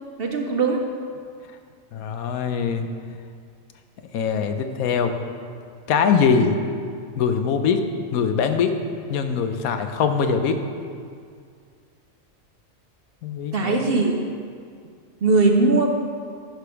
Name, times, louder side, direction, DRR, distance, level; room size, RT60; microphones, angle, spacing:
voice 1, 0.2-0.9 13.5-14.1 15.2-15.9, right 3 dB, 55° right, 3 dB, 0.7 m, -19 dB
voice 2, 1.9-2.9 4.1-5.2 5.9-6.6 7.2-7.8 8.1-8.8 9.1-10.6 13.2-13.8, left 6 dB, 85° left, 7 dB, 1.2 m, -22 dB
11.0 x 5.1 x 5.8 m, 2.2 s
omnidirectional pair, 1.5 m